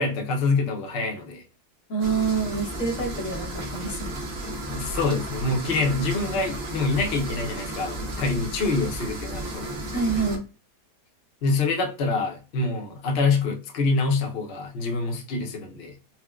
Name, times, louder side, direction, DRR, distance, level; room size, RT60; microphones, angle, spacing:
voice 1, 0.0-1.4 4.7-9.7 11.4-15.9, left 3 dB, 70° left, 0.5 m, -26 dB
voice 2, 1.9-4.1 9.9-10.4, right 5 dB, 55° left, 1.1 m, -27 dB
sound 1, 2.0-10.4, right 1 dB, 60° right, 1.1 m, -33 dB
4.2 x 2.1 x 2.2 m
omnidirectional pair, 1.8 m